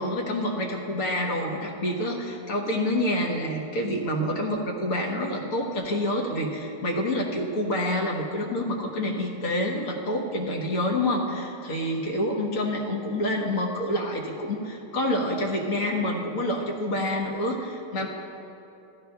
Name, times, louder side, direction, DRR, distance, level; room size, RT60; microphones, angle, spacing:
voice 1, 0.0-18.1, left 1 dB, 50° left, 0 dB, 1.5 m, -27 dB
15.0 x 13.0 x 2.3 m, 2.9 s
omnidirectional pair, 1.9 m